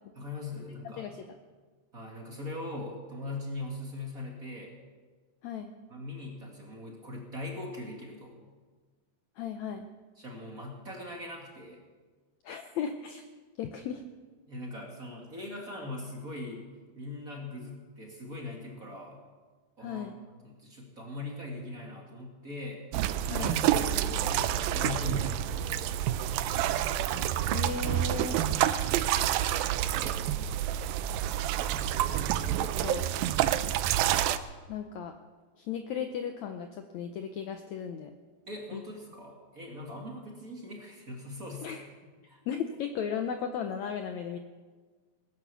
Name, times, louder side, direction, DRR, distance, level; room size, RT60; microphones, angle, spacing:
voice 1, 0.1-1.1 1.9-4.7 5.9-8.4 10.2-11.8 14.5-16.7 17.0-19.2 19.8-20.1 20.4-22.8 23.3-25.9 29.5-30.9 38.5-41.8 42.3-42.4, left 2 dB, 30° right, 0 dB, 1.9 m, -41 dB
voice 2, 0.8-1.2 5.4-5.7 9.4-9.9 12.4-13.2 13.6-14.0 19.8-20.1 23.3-23.6 27.5-28.4 32.5-33.1 34.7-35.1 35.6-38.1 38.7-38.8 41.6-41.9 42.5-44.4, left 7 dB, 80° left, 7 dB, 1.6 m, -36 dB
sound 1, 22.9-34.4, right 11 dB, 80° right, 2.4 m, -28 dB
19.5 x 10.5 x 6.9 m, 1.4 s
omnidirectional pair, 4.2 m